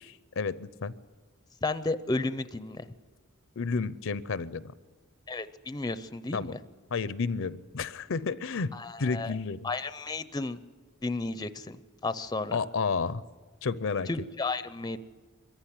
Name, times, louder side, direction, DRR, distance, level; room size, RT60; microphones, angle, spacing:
voice 1, 0.4-0.9 3.6-4.7 6.3-6.5 6.9-8.7 9.0-9.7 12.5-13.2 13.6-14.1, left 4 dB, 65° left, 17 dB, 0.6 m, -31 dB
voice 2, 1.6-2.9 5.3-6.6 8.7-9.3 9.6-10.6 11.0-12.6 14.1-15.0, left 3 dB, 20° left, 13 dB, 0.6 m, -33 dB
23.0 x 14.5 x 10.0 m, 1.5 s
head